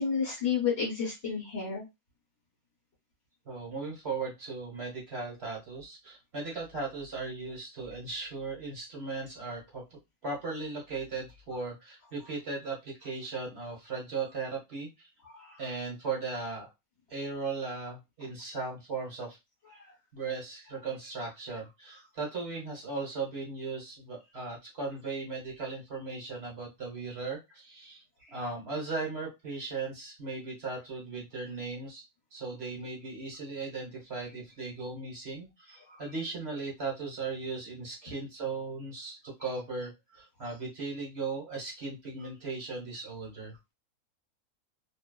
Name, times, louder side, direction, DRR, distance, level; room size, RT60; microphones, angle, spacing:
voice 1, 0.0-1.8 15.2-15.6 35.9-36.0, left 6 dB, 50° left, -3 dB, 1.1 m, -31 dB
voice 2, 3.5-15.1 15.6-16.7 17.1-19.4 20.1-28.0 28.3-32.0 32.3-43.5, right 4 dB, 50° right, -3 dB, 1.2 m, -37 dB
2.6 x 2.1 x 2.2 m, 0.21 s
omnidirectional pair, 1.6 m